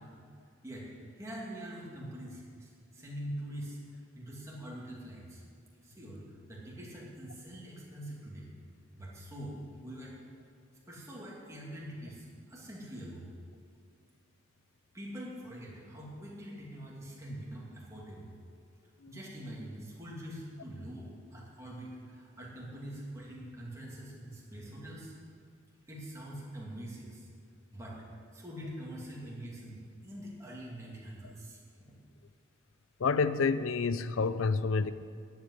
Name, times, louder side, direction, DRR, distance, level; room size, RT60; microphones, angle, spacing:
voice 1, 0.6-3.8 4.1-5.4 5.8-8.5 8.9-10.2 10.9-13.3 14.9-18.3 19.1-25.1 25.9-27.3 27.7-28.0 28.3-31.9, equal, 15° right, -5 dB, 2.6 m, -44 dB
voice 2, 33.0-34.9, left 4 dB, 85° left, 13 dB, 0.5 m, -29 dB
11.0 x 8.1 x 9.7 m, 2.2 s
head